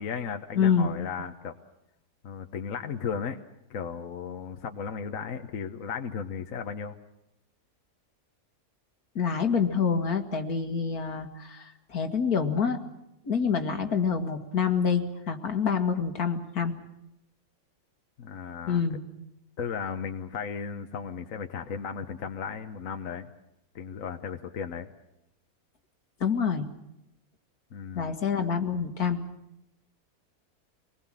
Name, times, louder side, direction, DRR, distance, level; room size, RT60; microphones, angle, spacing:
voice 1, 0.0-1.5 2.2-3.4 3.7-6.9 18.2-18.8 19.6-23.3 23.7-24.9 27.7-28.1, left 6 dB, 65° left, 6 dB, 1.5 m, -35 dB
voice 2, 0.6-1.1 9.2-12.8 13.2-16.7 18.7-19.0 26.2-26.7 28.0-29.2, left 6 dB, 80° left, 6 dB, 2.4 m, -27 dB
25.5 x 20.5 x 7.6 m, 0.86 s
omnidirectional pair, 1.6 m